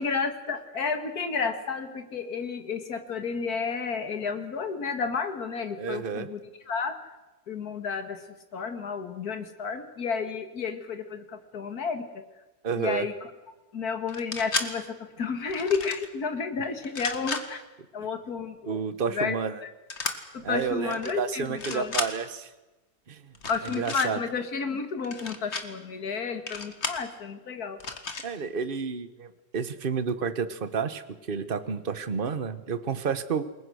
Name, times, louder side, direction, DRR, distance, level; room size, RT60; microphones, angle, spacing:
voice 1, 0.0-6.4 6.7-6.9 7.5-12.2 12.8-13.3 13.7-14.8 15.2-17.6 17.9-18.8 19.1-19.4 20.3-21.9 23.5-27.8, left 5 dB, 60° left, 7 dB, 2.4 m, -31 dB
voice 2, 5.8-6.3 12.6-13.1 18.6-19.6 20.4-22.5 23.1-23.3 23.8-24.2 28.2-31.0 31.3-33.4, right 6 dB, 35° right, 11 dB, 1.3 m, -30 dB
sound 1, 14.1-14.7 15.5-16.1 16.8-17.4 19.9-20.2 20.9-21.1 21.5-22.1 23.3-24.1 25.0-25.6 26.5-27.0 27.8-28.3, left 4 dB, 40° left, 2.1 m, -33 dB
29.0 x 21.5 x 6.4 m, 1.1 s
omnidirectional pair, 1.8 m